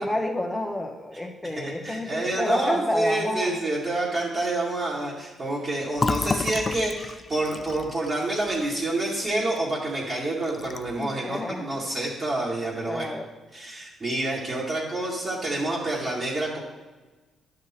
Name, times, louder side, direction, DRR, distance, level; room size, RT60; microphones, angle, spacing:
voice 1, 0.0-3.6 11.0-11.8 12.8-13.3, left 1 dB, 10° left, 3 dB, 1.3 m, -29 dB
voice 2, 1.6-13.1 13.5-16.6, right 2 dB, 35° right, -6 dB, 2.2 m, -28 dB
Fill (with liquid), 6.0-9.6 10.0-10.1 10.4-11.0, left 4 dB, 30° left, 0.3 m, -31 dB
11.0 x 6.5 x 4.4 m, 1.2 s
cardioid pair, 90°, 0 cm